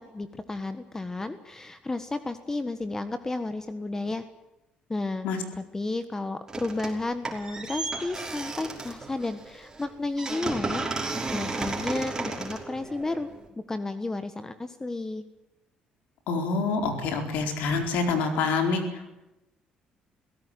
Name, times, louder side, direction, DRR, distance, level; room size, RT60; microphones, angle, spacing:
voice 1, 0.0-4.2 4.9-5.3 5.7-10.9 11.3-13.3 13.7-15.2, left 2 dB, 20° left, 11 dB, 1.5 m, -32 dB
sound 1, 6.5-7.0 7.3-13.5, right 3 dB, 20° right, 5.5 m, -34 dB
voice 2, 16.3-19.1, left 4 dB, 85° left, 5 dB, 4.4 m, -26 dB
22.5 x 16.5 x 9.3 m, 0.96 s
cardioid pair, 90°, 3 cm